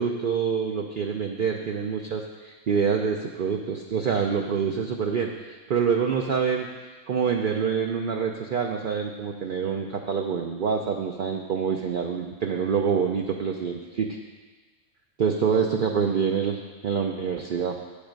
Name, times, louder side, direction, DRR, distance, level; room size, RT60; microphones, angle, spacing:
voice 1, 0.0-6.7 7.1-14.2 15.2-17.8, right 6 dB, 55° right, 2 dB, 0.6 m, -26 dB
8.6 x 7.2 x 5.2 m, 1.3 s
omnidirectional pair, 1.3 m